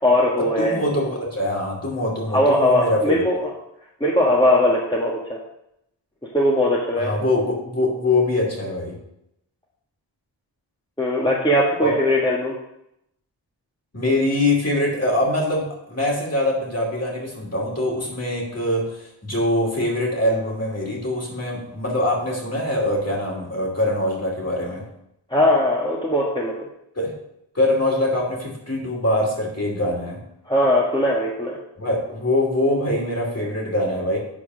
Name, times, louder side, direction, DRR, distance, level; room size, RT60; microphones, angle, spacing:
voice 1, 0.0-0.8 2.3-3.5 4.0-5.4 6.3-7.1 11.0-12.5 25.3-26.5 30.4-31.6, left 1 dB, 10° left, -4 dB, 1.6 m, -19 dB
voice 2, 0.6-3.2 7.0-9.0 11.8-11.9 13.9-24.8 27.0-27.1 27.5-30.2 31.8-34.2, left 1 dB, 35° left, -2 dB, 3.0 m, -23 dB
8.5 x 4.8 x 6.2 m, 0.79 s
wide cardioid pair, 80°, 46 cm